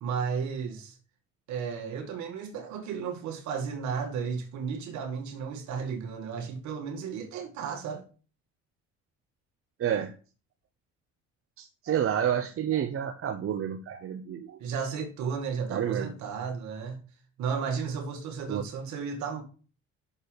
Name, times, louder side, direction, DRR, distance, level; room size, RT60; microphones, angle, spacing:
voice 1, 0.0-1.0 1.5-8.0 14.6-17.0 17.4-19.4, right 6 dB, 70° right, 2.3 m, -33 dB
voice 2, 9.8-10.1 11.6-14.6 15.7-16.1 18.5-18.6, right 9 dB, 45° right, 0.9 m, -29 dB
6.8 x 5.5 x 6.5 m
supercardioid pair, 80°, 29 cm